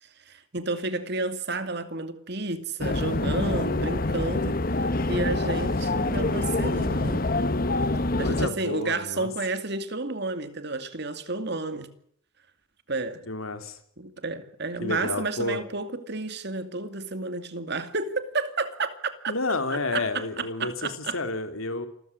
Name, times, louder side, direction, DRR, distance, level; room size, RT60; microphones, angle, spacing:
voice 1, 0.0-4.6 5.1-7.2 8.2-11.9 12.9-13.2 14.0-19.3 19.7-21.2, right 3 dB, 55° right, 2.4 m, -31 dB
sound 1, 2.8-8.5, left 2 dB, 45° left, 1.1 m, -26 dB
voice 2, 8.2-9.3 13.3-13.8 14.8-15.6 19.3-21.9, left 2 dB, 85° left, 3.2 m, -30 dB
27.5 x 14.5 x 9.7 m
head